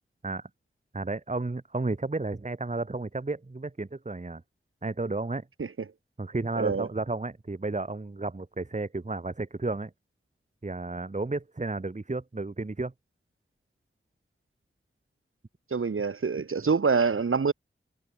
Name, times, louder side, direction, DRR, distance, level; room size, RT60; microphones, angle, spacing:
voice 1, 0.9-4.4 4.8-5.4 6.2-9.9 10.6-12.9, right 3 dB, 35° right, 2.3 m, -32 dB
voice 2, 6.6-6.9 15.7-17.5, right 5 dB, 90° right, 3.0 m, -25 dB
wide cardioid pair, 85°, 21 cm